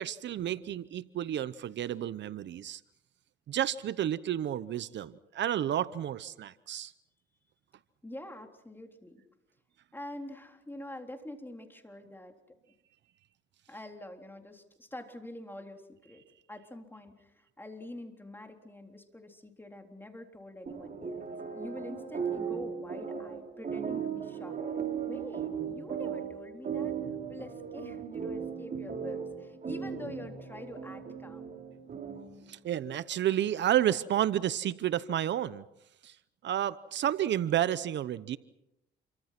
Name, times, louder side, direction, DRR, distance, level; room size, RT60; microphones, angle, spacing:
voice 1, 0.0-2.8 3.5-6.9 32.5-35.6 36.0-36.2 36.4-38.4, right 11 dB, 65° right, 0.8 m, -31 dB
voice 2, 8.0-9.2 9.9-12.3 13.7-16.2 16.5-21.3 21.5-24.6 25.0-27.0 27.3-31.4, left 1 dB, 10° left, 3.8 m, -46 dB
sound 1, 20.7-32.4, right 7 dB, 45° right, 6.4 m, -37 dB
29.0 x 24.5 x 6.0 m
cardioid pair, 90°, 20 cm